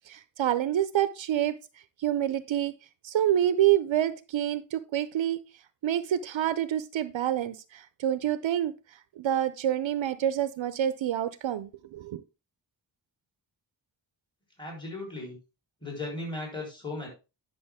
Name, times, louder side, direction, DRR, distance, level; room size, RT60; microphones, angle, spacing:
voice 1, 0.1-2.7 3.0-5.4 5.8-12.2, right 11 dB, 80° right, 13 dB, 0.6 m, -27 dB
voice 2, 14.6-15.4 15.8-17.1, left 2 dB, 10° left, -1 dB, 4.0 m, -36 dB
10.5 x 6.3 x 3.5 m, 0.29 s
wide cardioid pair, 125°, 45 cm